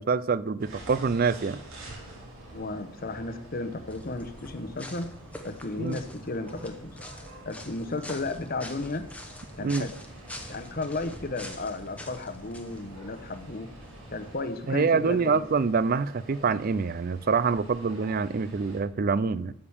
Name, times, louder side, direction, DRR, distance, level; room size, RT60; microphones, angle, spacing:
voice 1, 0.0-1.6 5.8-6.0 9.6-9.9 14.7-19.5, right 5 dB, 40° right, 0.4 m, -26 dB
sound 1, 0.6-18.8, right 1 dB, 65° right, 3.4 m, -48 dB
voice 2, 2.5-5.1 5.4-7.0 7.4-9.1 9.6-9.9 10.5-13.7 14.1-15.4, left 2 dB, 40° left, 0.9 m, -34 dB
sound 2, 3.9-14.4, left 1 dB, 5° left, 0.9 m, -45 dB
13.5 x 5.0 x 7.0 m
head